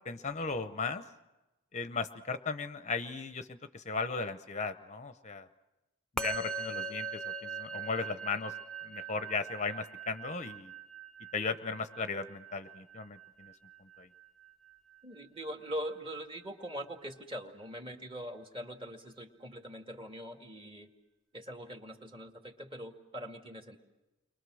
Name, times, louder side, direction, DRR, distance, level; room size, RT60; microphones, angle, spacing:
voice 1, 0.0-1.0 1.7-5.5 6.2-8.5 8.8-10.7 11.3-13.5 13.8-14.1, left 4 dB, 30° left, 9 dB, 0.8 m, -36 dB
Musical instrument, 6.2-15.7, right 4 dB, ahead, 0.8 m, -42 dB
voice 2, 15.0-20.9 21.3-23.8, equal, 25° right, 4 dB, 2.0 m, -42 dB
30.0 x 24.0 x 6.3 m, 1.0 s
head